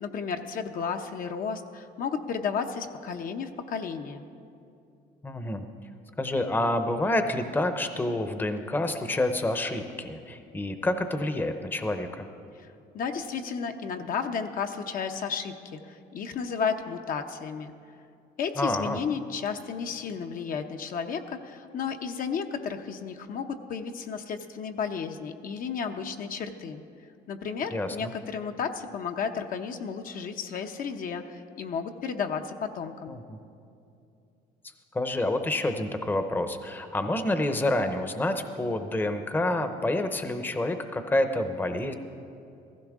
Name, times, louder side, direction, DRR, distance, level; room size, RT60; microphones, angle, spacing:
voice 1, 0.0-4.3 12.9-17.7 18.4-26.8 27.3-33.2, left 6 dB, 55° left, 6 dB, 0.8 m, -33 dB
voice 2, 5.2-5.6 6.2-12.3 18.6-19.0 27.7-28.1 33.1-33.4 34.9-41.9, left 1 dB, 10° left, 8 dB, 0.7 m, -28 dB
15.5 x 15.5 x 3.6 m, 2.6 s
cardioid pair, 110°, 17 cm